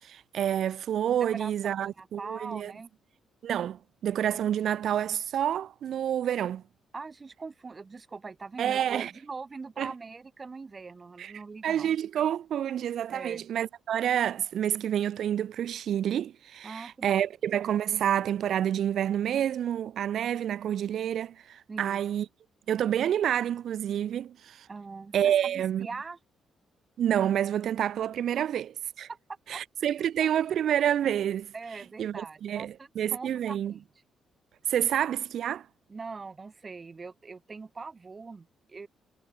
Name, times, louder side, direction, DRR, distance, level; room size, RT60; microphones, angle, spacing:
voice 1, 0.0-2.7 3.4-6.6 8.6-9.1 9.8-9.9 11.2-11.3 11.6-22.2 22.7-24.7 25.1-25.9 27.0-28.7 29.0-29.1 29.5-31.5 32.0-33.7 34.7-35.6, right 10 dB, 65° right, 3.3 m, -28 dB
voice 2, 1.3-2.9 6.9-11.9 13.1-13.5 16.6-17.1 21.7-22.0 24.7-26.2 29.1-29.2 29.5-30.3 31.5-33.9 35.9-38.9, right 4 dB, 30° right, 4.1 m, -42 dB
cardioid pair, 90°, 0 cm